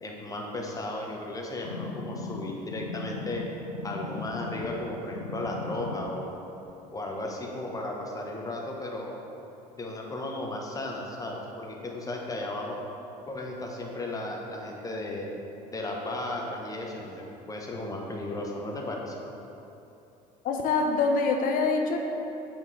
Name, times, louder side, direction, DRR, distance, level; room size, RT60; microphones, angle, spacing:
voice 1, 0.0-3.5 3.8-6.4 6.9-9.2 9.8-12.8 13.3-15.3 15.7-19.1, left 1 dB, 15° left, -1 dB, 1.1 m, -35 dB
sound 1, 1.6-4.8 5.1-6.1 6.7-6.8, left 3 dB, 85° left, 0.5 m, -37 dB
voice 2, 20.4-22.1, left 4 dB, 45° left, 3 dB, 0.8 m, -25 dB
8.4 x 3.6 x 4.8 m, 3.0 s
figure-of-eight pair, 65°, 21 cm